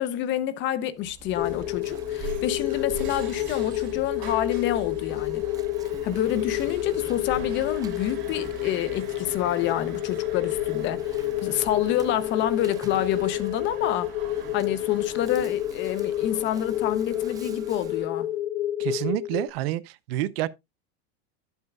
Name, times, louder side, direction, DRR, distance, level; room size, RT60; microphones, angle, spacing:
voice 1, 0.0-5.4 6.0-18.3, left 11 dB, 35° left, 0.7 m, -28 dB
Insect, 1.0-18.0, right 5 dB, 10° right, 0.4 m, -46 dB
sound 1, 1.4-19.5, left 15 dB, 75° left, 0.7 m, -29 dB
sound 2, 1.4-18.1, right 6 dB, 35° right, 3.8 m, -44 dB
voice 2, 18.8-20.5, right 15 dB, 65° right, 0.7 m, -28 dB
10.5 x 8.1 x 2.3 m
supercardioid pair, 145°, 32 cm